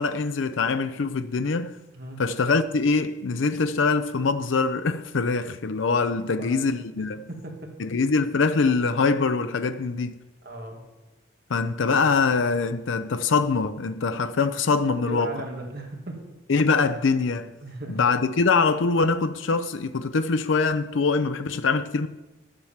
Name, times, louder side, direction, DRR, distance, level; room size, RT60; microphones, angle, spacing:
voice 1, 0.0-1.7 2.2-7.2 7.8-10.2 11.5-15.3 16.5-17.5 17.9-22.1, left 4 dB, 80° left, 0.5 m, -23 dB
voice 2, 6.2-6.7 7.3-7.7 10.4-10.8 15.1-16.2 17.6-18.0, right 1 dB, 50° right, 2.1 m, -36 dB
11.0 x 7.6 x 7.2 m
head